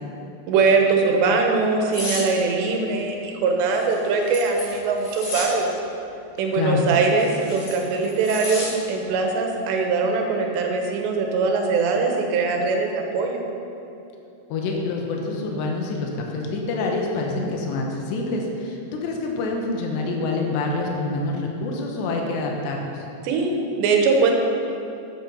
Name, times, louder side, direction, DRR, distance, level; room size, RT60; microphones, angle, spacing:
voice 1, 0.5-5.7 6.4-13.4 23.2-24.3, right 4 dB, 90° right, 2 dB, 3.4 m, -21 dB
sound 1, 1.9-2.3 3.7-5.5 6.9-8.7 9.1-9.3, left 2 dB, 50° left, 3.7 m, -32 dB
voice 2, 6.5-6.9 14.5-23.0, left 3 dB, 85° left, 0 dB, 3.4 m, -26 dB
11.0 x 8.8 x 5.5 m, 2.7 s
omnidirectional pair, 4.9 m